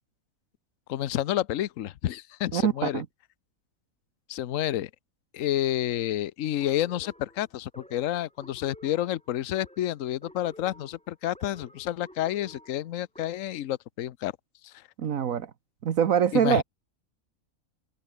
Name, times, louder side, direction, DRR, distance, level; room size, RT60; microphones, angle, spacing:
voice 1, 0.9-3.0 4.3-4.9 5.3-14.3 14.6-14.7 16.3-16.6, left 12 dB, 70° left, 1.1 m, -29 dB
voice 2, 2.5-3.1 15.0-15.5 15.8-16.6, right 8 dB, 80° right, 1.5 m, -24 dB
sound 1, 6.6-13.7, equal, 5° left, 5.0 m, -52 dB
omnidirectional pair, 1.4 m